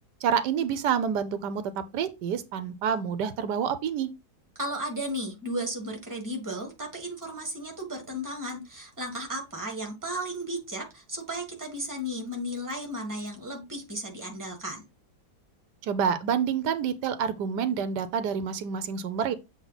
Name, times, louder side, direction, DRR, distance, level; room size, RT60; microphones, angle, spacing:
voice 1, 0.2-4.1 15.8-19.3, right 7 dB, 90° right, 1.3 m, -28 dB
voice 2, 4.5-14.8, equal, 10° right, 1.6 m, -34 dB
7.4 x 3.2 x 4.0 m
omnidirectional pair, 1.8 m